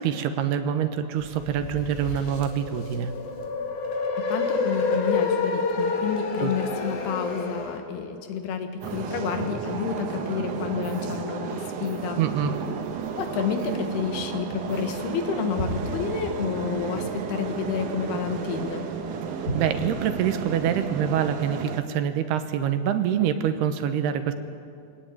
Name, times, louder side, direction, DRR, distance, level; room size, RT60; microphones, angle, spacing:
voice 1, 0.0-3.1 6.4-6.5 12.2-12.6 19.5-24.3, right 9 dB, 80° right, 9 dB, 3.1 m, -25 dB
sound 1, 1.2-7.8, left 4 dB, 55° left, 3.2 m, -28 dB
voice 2, 4.3-12.2 13.2-18.9, left 7 dB, 80° left, 5 dB, 3.5 m, -30 dB
sound 2, 8.8-21.8, right 6 dB, 60° right, 2.4 m, -33 dB
sound 3, 12.3-21.7, equal, 25° left, 2.4 m, -39 dB
24.0 x 17.5 x 8.9 m, 2.3 s
omnidirectional pair, 4.7 m